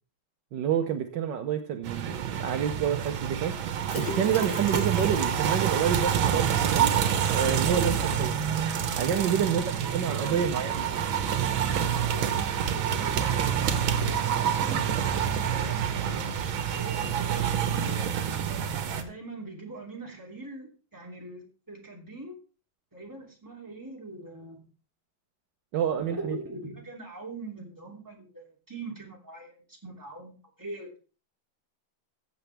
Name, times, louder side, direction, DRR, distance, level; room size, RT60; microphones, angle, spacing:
voice 1, 0.5-3.6 3.9-7.0 7.3-8.4 9.0-9.6 9.9-10.9 25.7-26.4, right 8 dB, 70° right, 6 dB, 1.5 m, -28 dB
sound 1, 1.8-19.0, right 8 dB, 90° right, 1.9 m, -27 dB
sound 2, 3.8-7.0 7.3-7.4 7.7-7.8, left 4 dB, 85° left, 2.5 m, -39 dB
voice 2, 9.1-10.7 11.9-14.8 15.4-18.4 18.9-22.3 22.9-24.7 26.0-31.0, right 2 dB, 10° right, -1 dB, 2.8 m, -42 dB
14.5 x 7.9 x 3.4 m, 0.35 s
omnidirectional pair, 2.1 m